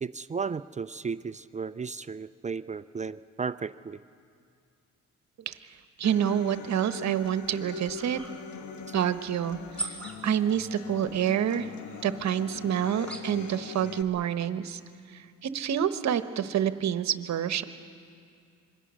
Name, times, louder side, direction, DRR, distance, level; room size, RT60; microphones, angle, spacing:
voice 1, 0.0-4.0, right 5 dB, 25° right, 13 dB, 0.5 m, -34 dB
Human voice / Acoustic guitar, 6.0-14.0, left 6 dB, 75° left, 1.5 m, -41 dB
voice 2, 6.0-8.2 8.9-10.0 10.2-11.7 12.0-14.8 15.1-17.6, right 9 dB, 65° right, 11 dB, 1.1 m, -28 dB
sound 1, 7.1-13.6, right 2 dB, 5° left, 4.4 m, -44 dB
26.0 x 22.5 x 6.3 m, 2.4 s
cardioid pair, 90°, 30 cm